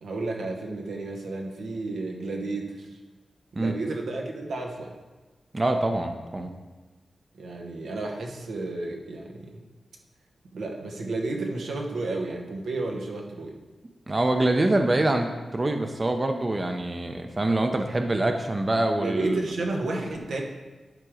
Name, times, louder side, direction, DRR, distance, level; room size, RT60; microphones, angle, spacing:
voice 1, 0.0-3.0 3.5-4.9 7.3-9.6 10.5-13.5 19.0-20.4, right 2 dB, 90° right, 1 dB, 1.0 m, -32 dB
voice 2, 5.5-6.5 14.1-19.4, right 2 dB, 30° right, 5 dB, 0.6 m, -25 dB
10.5 x 3.7 x 4.8 m, 1.2 s
cardioid pair, 80°, 0 cm